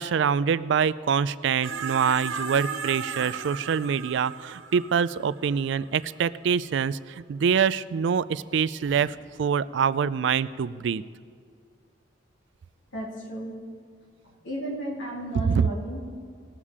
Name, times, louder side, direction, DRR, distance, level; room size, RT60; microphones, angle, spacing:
voice 1, 0.0-11.0 15.5-15.7, right 7 dB, 65° right, 17 dB, 0.3 m, -25 dB
sound 1, 1.6-6.1 8.8-9.1, right 5 dB, 80° right, 0.9 m, -35 dB
voice 2, 12.9-13.6 14.2-16.0, right 1 dB, 75° left, -2 dB, 2.8 m, -33 dB
19.5 x 7.3 x 4.9 m, 2.2 s
head